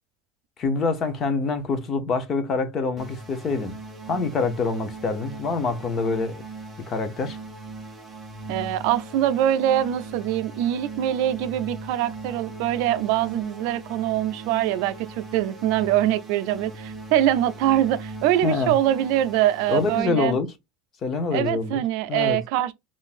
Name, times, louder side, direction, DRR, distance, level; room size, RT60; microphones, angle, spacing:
voice 1, 0.6-3.8 4.1-6.4 6.9-7.4 18.4-18.7 19.7-20.5 21.0-21.8 22.1-22.4, left 4 dB, 25° left, 0.7 m, -25 dB
sound 1, 3.0-20.0, right 2 dB, 5° right, 0.9 m, -39 dB
voice 2, 8.5-20.4 21.3-22.7, right 12 dB, 55° right, 0.4 m, -23 dB
3.8 x 2.5 x 2.4 m
supercardioid pair, 165°, 0 cm